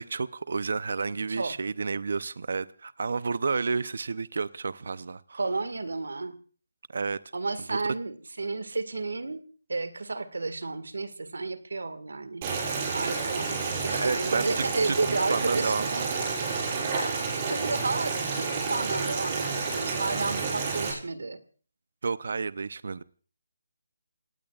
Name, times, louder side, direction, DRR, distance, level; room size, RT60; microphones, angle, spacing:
voice 1, 0.0-5.4 6.9-7.2 7.7-7.8 13.9-15.0 15.3-15.9 22.0-23.0, right 4 dB, 65° right, 16 dB, 0.7 m, -30 dB
voice 2, 5.4-6.4 7.3-9.4 9.7-12.5 12.9-16.0 16.9-21.4, right 3 dB, 80° right, 12 dB, 1.8 m, -32 dB
Boiling, 12.4-20.9, right 4 dB, 30° right, 6.0 m, -30 dB
28.5 x 18.0 x 2.4 m, 0.39 s
figure-of-eight pair, 160°, 0 cm